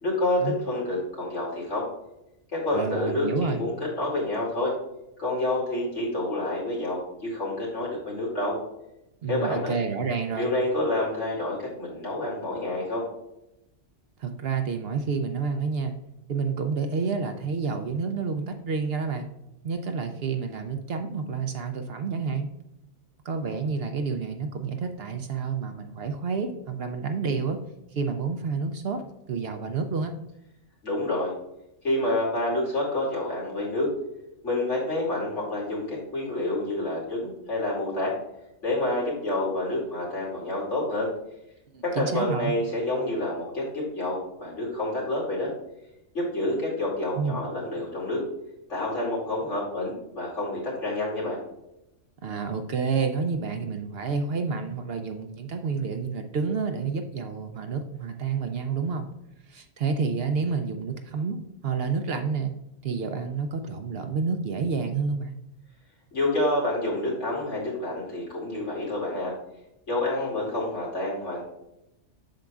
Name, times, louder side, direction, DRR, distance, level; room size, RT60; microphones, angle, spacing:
voice 1, 0.0-1.9 2.5-4.7 5.2-8.6 9.3-9.7 10.4-13.0 30.8-31.3 31.8-33.9 34.4-38.1 38.6-41.1 41.8-45.5 46.1-48.2 48.7-51.4 66.1-69.3 69.9-71.4, left 1 dB, 80° left, -5 dB, 2.8 m, -28 dB
voice 2, 2.7-3.6 9.2-10.5 14.2-15.9 16.3-19.3 19.6-22.5 23.2-27.6 27.9-29.0 29.3-30.1 41.7-42.5 47.2-47.4 52.2-59.1 59.5-61.4 61.6-62.5 62.8-65.4, right 5 dB, 60° right, 6 dB, 0.8 m, -29 dB
7.6 x 6.5 x 2.4 m, 0.88 s
omnidirectional pair, 1.2 m